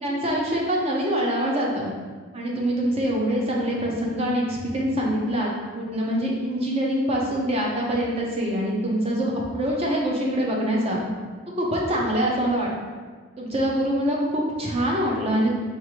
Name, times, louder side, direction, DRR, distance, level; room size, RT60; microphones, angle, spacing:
voice 1, 0.0-1.9 2.3-11.0 11.6-12.7 13.4-15.6, equal, 30° right, -2 dB, 0.6 m, -24 dB
3.5 x 3.3 x 3.1 m, 1.5 s
head